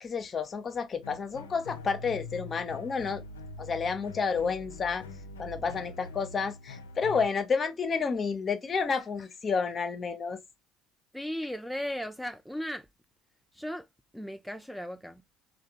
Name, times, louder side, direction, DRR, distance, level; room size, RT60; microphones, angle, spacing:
voice 1, 0.0-3.2 3.6-5.0 5.4-10.4, left 5 dB, 35° left, 0.7 m, -30 dB
sound 1, 1.0-7.3, left 3 dB, 85° left, 0.4 m, -44 dB
voice 2, 11.1-12.9 13.5-13.9 14.1-15.2, equal, ahead, 0.3 m, -36 dB
3.3 x 2.1 x 2.8 m
hypercardioid pair, 65°, 0 cm